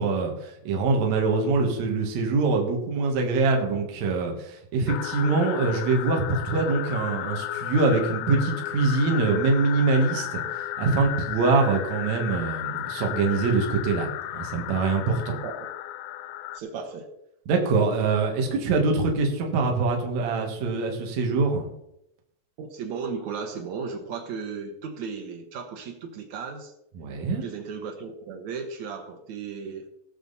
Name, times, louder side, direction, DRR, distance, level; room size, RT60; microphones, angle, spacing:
voice 1, 0.0-14.1 14.3-15.4 17.5-21.7 27.0-27.4, right 3 dB, 50° right, 1 dB, 2.5 m, -24 dB
sound 1, 4.9-16.6, left 13 dB, 90° left, 2.1 m, -34 dB
voice 2, 16.5-17.1 17.8-17.9 22.6-26.7 27.3-29.9, right 5 dB, 80° right, 2 dB, 1.6 m, -35 dB
18.5 x 6.3 x 4.1 m, 0.80 s
omnidirectional pair, 5.1 m